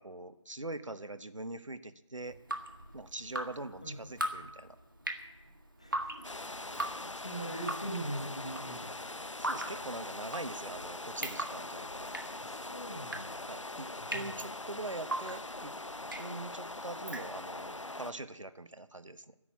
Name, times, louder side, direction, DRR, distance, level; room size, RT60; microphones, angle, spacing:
voice 1, 0.0-2.4 2.9-4.8 9.4-12.1 13.5-15.7 16.2-19.3, right 2 dB, 80° right, 12 dB, 1.0 m, -43 dB
Drip, 2.3-17.7, right 1 dB, 40° right, 1.5 m, -41 dB
voice 2, 5.8-6.3 6.7-8.9 12.4-13.3 14.0-14.3, right 1 dB, 10° left, 0 dB, 1.2 m, -42 dB
sound 1, 6.2-18.1, left 2 dB, 75° left, 0.9 m, -42 dB
12.5 x 11.0 x 8.3 m, 1.0 s
figure-of-eight pair, 175°, 16 cm